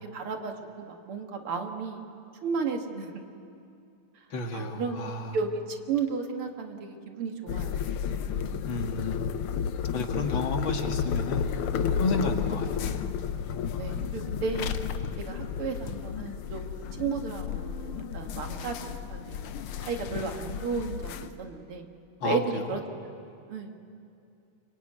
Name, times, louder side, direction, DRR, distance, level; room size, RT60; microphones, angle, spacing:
voice 1, 0.1-2.0 2.4-3.2 4.5-8.0 13.8-14.7 15.2-18.8 19.1-19.5 19.8-21.9 22.2-22.8 23.5-23.7, right 5 dB, 85° right, 4 dB, 2.6 m, -33 dB
voice 2, 4.3-5.4 8.7-9.3 9.9-11.5 11.9-12.9 22.2-22.6, left 3 dB, 65° left, 4 dB, 2.6 m, -32 dB
sound 1, 7.5-21.3, left 7 dB, 85° left, 1.8 m, -32 dB
25.0 x 23.0 x 9.3 m, 2.6 s
omnidirectional pair, 2.4 m